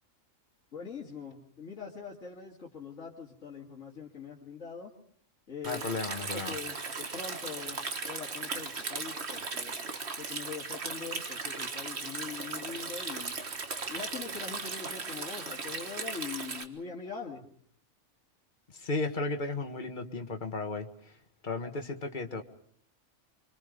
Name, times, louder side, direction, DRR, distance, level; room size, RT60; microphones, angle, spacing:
voice 1, 0.7-4.9 5.5-5.9 6.2-7.8 8.1-9.7 10.2-13.4 13.9-17.5, left 5 dB, 80° left, -3 dB, 2.6 m, -42 dB
voice 2, 5.6-6.6 18.7-21.1 21.4-22.4, left 3 dB, 40° left, 5 dB, 1.8 m, -34 dB
Stream, 5.6-16.6, right 4 dB, 60° right, 1.8 m, -37 dB
25.5 x 25.0 x 5.2 m, 0.62 s
omnidirectional pair, 1.3 m